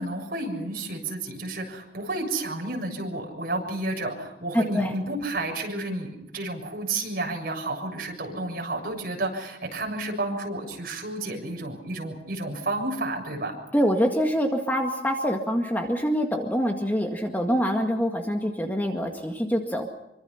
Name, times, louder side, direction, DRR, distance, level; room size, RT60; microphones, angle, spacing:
voice 1, 0.0-13.6, right 2 dB, 55° right, 1 dB, 7.2 m, -31 dB
voice 2, 4.5-4.9 13.7-19.9, equal, 10° left, 2 dB, 1.9 m, -25 dB
26.0 x 24.5 x 5.8 m, 0.88 s
head